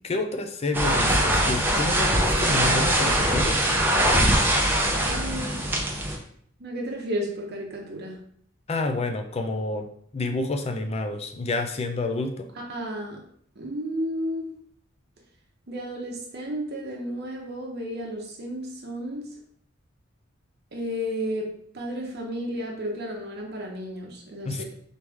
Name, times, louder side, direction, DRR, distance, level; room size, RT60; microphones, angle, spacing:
voice 1, 0.0-3.6 8.7-9.9 10.1-12.5 24.5-24.6, left 2 dB, 30° left, 5 dB, 0.4 m, -29 dB
sound 1, 0.7-6.2, right 1 dB, 10° right, 0.6 m, -22 dB
voice 2, 4.9-5.7 6.6-8.2 12.7-13.2 13.6-14.5 15.7-19.3 20.7-24.6, equal, 55° right, 0 dB, 0.8 m, -33 dB
4.0 x 3.1 x 3.5 m, 0.62 s
head